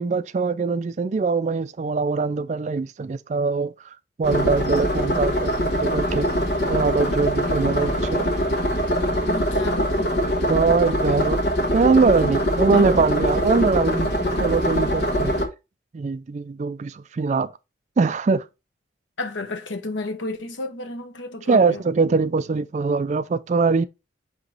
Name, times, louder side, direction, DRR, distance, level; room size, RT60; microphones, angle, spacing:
voice 1, 0.0-3.7 4.2-6.3 6.7-8.3 10.5-11.4 11.7-14.1 14.4-15.4 15.9-17.5 18.0-18.4 21.5-23.8, right 4 dB, 40° right, 0.3 m, -22 dB
sound 1, 4.2-15.4, equal, 55° left, 1.3 m, -23 dB
voice 2, 9.2-10.1 12.2-12.3 12.7-13.1 19.2-21.8, left 2 dB, 85° left, 1.0 m, -32 dB
8.2 x 3.0 x 3.9 m
head